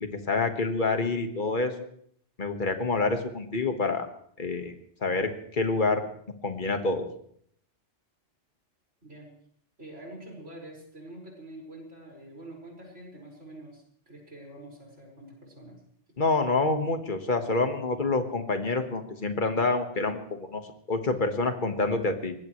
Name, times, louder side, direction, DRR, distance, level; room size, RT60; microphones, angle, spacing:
voice 1, 0.0-1.9 2.4-4.1 4.4-4.7 5.0-6.0 6.4-7.1 16.2-20.6 20.9-22.3, left 3 dB, 45° left, 6 dB, 1.7 m, -27 dB
voice 2, 9.8-15.8, right 1 dB, 80° right, -2 dB, 5.7 m, -46 dB
23.5 x 19.0 x 3.2 m, 0.64 s
omnidirectional pair, 1.2 m